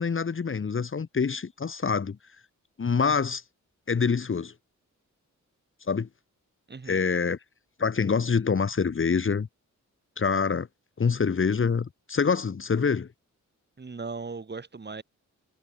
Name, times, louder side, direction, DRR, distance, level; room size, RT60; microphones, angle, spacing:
voice 1, 0.0-2.2 2.8-3.4 3.9-4.5 5.9-6.1 6.9-7.4 7.8-9.5 10.2-10.7 11.0-13.1, left 5 dB, 40° left, 1.3 m, -25 dB
voice 2, 6.7-7.0 13.8-15.0, right 4 dB, 35° right, 1.8 m, -38 dB
cardioid pair, 90°, 31 cm